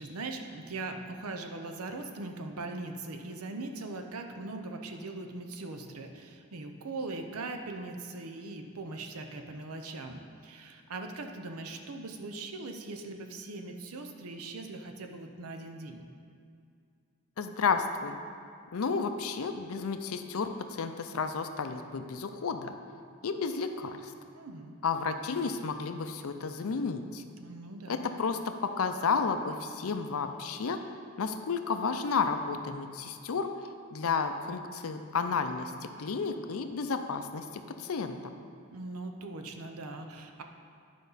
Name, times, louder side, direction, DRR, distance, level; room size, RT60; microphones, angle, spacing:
voice 1, 0.0-16.0 24.3-24.7 27.4-28.2 38.7-40.4, right 2 dB, 80° right, 5 dB, 0.7 m, -40 dB
voice 2, 17.4-18.2 18.7-22.7 23.2-24.1 24.8-27.2 27.9-30.8 31.2-33.5 33.9-35.7 36.0-38.3, left 5 dB, 70° left, 8 dB, 0.5 m, -32 dB
10.0 x 5.3 x 4.0 m, 2.4 s
head